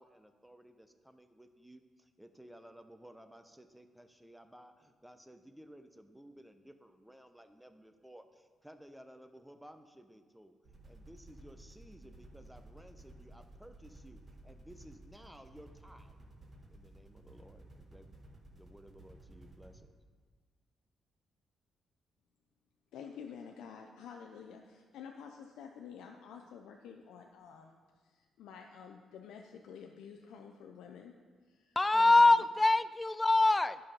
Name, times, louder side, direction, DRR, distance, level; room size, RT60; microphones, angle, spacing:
voice 1, 0.0-10.5 10.8-16.2 16.7-18.1 18.5-19.9, equal, 5° right, 8 dB, 0.8 m, -56 dB
sound 1, 10.6-19.8, right 1 dB, 45° right, 1.7 m, -55 dB
voice 2, 22.9-31.1 31.5-32.3, left 7 dB, 80° left, 3 dB, 0.6 m, -50 dB
voice 3, 31.8-33.8, left 2 dB, 20° left, 15 dB, 0.3 m, -24 dB
11.0 x 5.6 x 5.2 m, 1.5 s
supercardioid pair, 65°, 0 cm